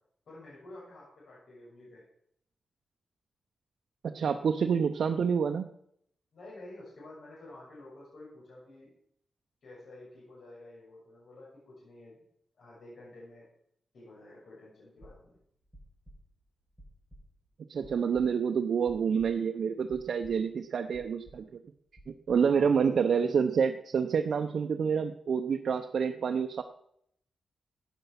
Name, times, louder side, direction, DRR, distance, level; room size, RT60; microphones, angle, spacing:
voice 1, 0.3-2.0 6.3-8.9 9.6-12.2 12.6-13.5 13.9-15.4 22.4-23.3, left 1 dB, 70° left, -7 dB, 6.9 m, -50 dB
voice 2, 4.1-5.7 17.7-21.6 22.1-26.6, right 6 dB, 65° right, 5 dB, 0.8 m, -28 dB
sound 1, 15.0-19.6 19.9-20.6 20.9-21.5 22.0-22.5, equal, 5° left, 6.3 m, -55 dB
15.0 x 9.2 x 5.9 m, 0.71 s
wide cardioid pair, 125°, 0 cm